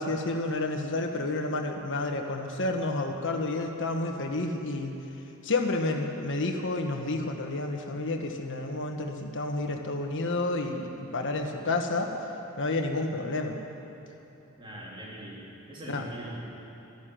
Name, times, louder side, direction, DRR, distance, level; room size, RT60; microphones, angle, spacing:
voice 1, 0.0-4.9 5.4-12.1 12.6-13.6 15.9-16.0, left 2 dB, 60° left, 3 dB, 1.5 m, -30 dB
voice 2, 14.6-16.4, right 1 dB, 25° right, -5 dB, 3.1 m, -41 dB
13.5 x 12.0 x 9.2 m, 2.9 s
head